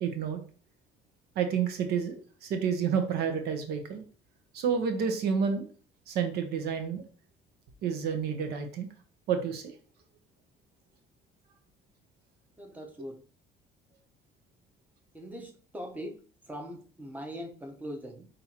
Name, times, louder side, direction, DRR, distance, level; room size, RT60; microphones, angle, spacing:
voice 1, 0.0-0.4 1.4-4.0 4.5-5.7 6.1-7.0 7.8-8.9 9.3-9.7, right 6 dB, 75° right, 6 dB, 0.7 m, -29 dB
voice 2, 12.6-13.2 15.1-16.2 16.5-18.3, equal, 10° right, 2 dB, 0.9 m, -41 dB
5.7 x 2.6 x 2.8 m, 0.41 s
cardioid pair, 110°, 17 cm